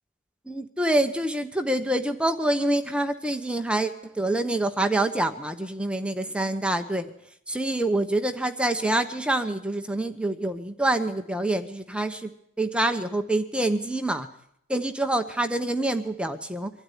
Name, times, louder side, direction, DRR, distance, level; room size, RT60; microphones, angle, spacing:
voice 1, 0.5-7.1 7.5-12.3 12.6-14.3 14.7-16.7, right 1 dB, 5° right, 7 dB, 0.9 m, -26 dB
24.0 x 13.0 x 9.9 m, 0.72 s
head